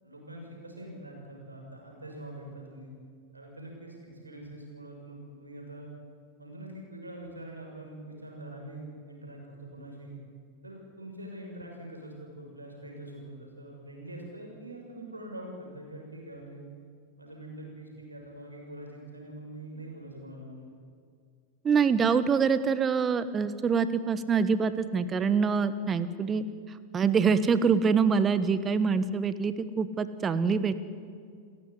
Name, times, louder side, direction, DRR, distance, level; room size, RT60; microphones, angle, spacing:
voice 1, 0.0-2.9 3.3-5.9 6.4-10.2 10.6-16.6 17.2-20.6, right 1 dB, 80° right, 1 dB, 6.6 m, -44 dB
voice 2, 21.6-26.4 26.9-30.7, right 5 dB, 20° right, 14 dB, 1.3 m, -25 dB
29.5 x 14.5 x 9.6 m, 2.2 s
figure-of-eight pair, 90°, 0 cm